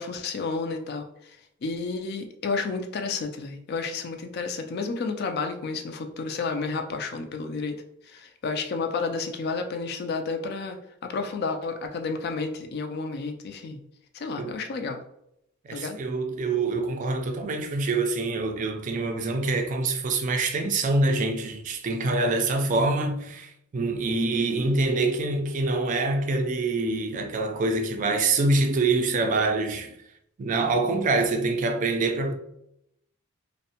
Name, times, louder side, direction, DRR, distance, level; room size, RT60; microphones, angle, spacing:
voice 1, 0.0-13.8 14.1-15.0 15.7-16.0, left 4 dB, 50° left, 0.3 m, -31 dB
voice 2, 15.7-29.9 30.4-32.3, right 3 dB, 40° right, 0.3 m, -25 dB
2.6 x 2.1 x 2.7 m
head